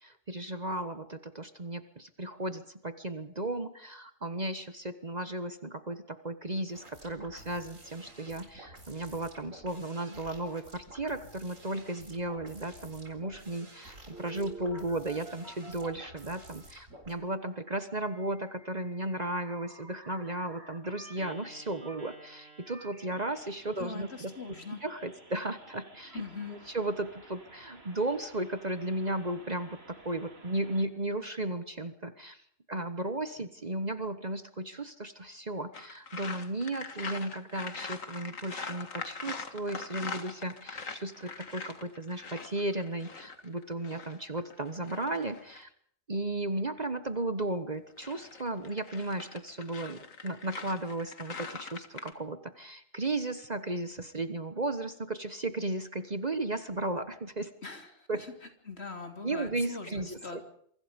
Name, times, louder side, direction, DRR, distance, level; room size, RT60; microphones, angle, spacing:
voice 1, 0.0-26.2 26.5-32.4 32.7-45.7 46.1-57.5 58.1-58.2 59.2-60.4, right 2 dB, 35° right, 10 dB, 1.3 m, -35 dB
sound 1, 6.7-17.1, right 1 dB, 80° right, 4.7 m, -52 dB
Telephone, 14.1-16.6 18.0-30.9, right 3 dB, 50° right, 3.5 m, -52 dB
voice 2, 23.8-24.8 26.1-26.6 57.6-58.3 58.7-60.4, left 4 dB, 55° left, 5 dB, 3.4 m, -41 dB
sound 2, 35.7-45.6 47.7-52.1, left 5 dB, 90° left, 2.2 m, -43 dB
27.0 x 24.5 x 5.3 m, 0.64 s
omnidirectional pair, 1.3 m